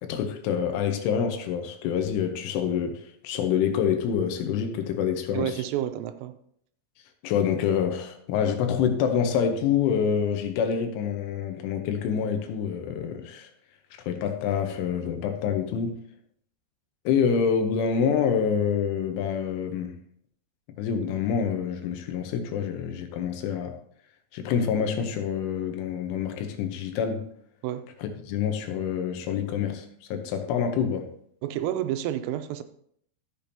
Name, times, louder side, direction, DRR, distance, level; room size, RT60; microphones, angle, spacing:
voice 1, 0.0-5.5 7.2-13.5 14.0-16.0 17.1-20.0 20.8-23.8 24.3-27.3 28.0-31.1, left 7 dB, 80° left, 3.2 m, -27 dB
voice 2, 5.3-6.4 27.6-27.9 31.4-32.6, right 12 dB, 85° right, 3.2 m, -29 dB
13.5 x 6.8 x 2.8 m
omnidirectional pair, 5.9 m